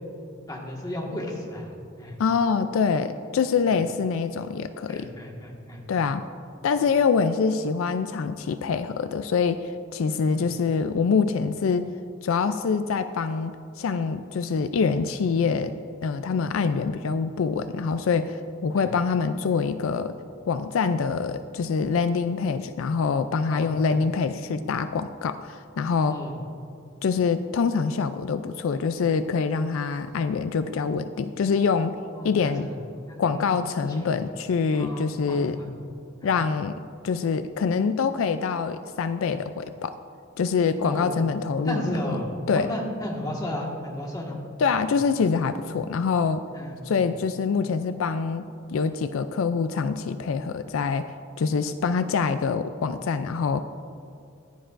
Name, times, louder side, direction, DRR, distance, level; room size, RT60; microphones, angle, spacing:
voice 1, 0.5-1.7 2.0-2.1 3.6-3.7 4.9-6.1 10.3-10.4 15.1-15.2 18.7-18.8 23.5-24.0 26.1-26.3 32.0-32.8 33.1-33.4 33.8-34.1 34.8-35.7 36.2-36.3 40.8-41.2 41.6-44.4 44.8-44.9 46.5-46.8, left 1 dB, 20° left, -2 dB, 1.6 m, -34 dB
voice 2, 2.2-5.1 5.9-6.2 6.6-11.8 12.2-15.7 16.0-20.2 20.5-26.2 27.0-32.0 32.2-32.7 33.2-35.6 36.2-40.0 40.4-42.1 42.5-42.7 44.6-46.4 46.9-51.1 51.4-53.6, left 5 dB, 75° left, 11 dB, 0.4 m, -25 dB
15.0 x 10.0 x 2.5 m, 2.5 s
head